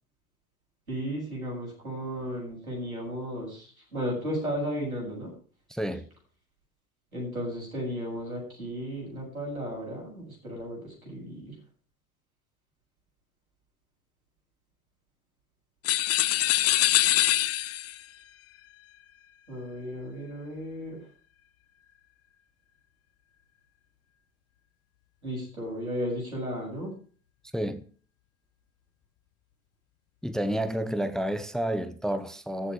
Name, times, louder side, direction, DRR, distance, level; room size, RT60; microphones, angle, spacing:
voice 1, 0.9-5.3 7.1-11.5 19.5-21.0 25.2-26.9, equal, 85° right, 7.8 m, -34 dB
voice 2, 5.7-6.1 27.5-27.8 30.2-32.7, right 1 dB, ahead, 0.9 m, -30 dB
sound 1, 15.8-18.0, left 15 dB, 35° left, 0.7 m, -24 dB
14.5 x 7.6 x 7.2 m
figure-of-eight pair, 70°, 42 cm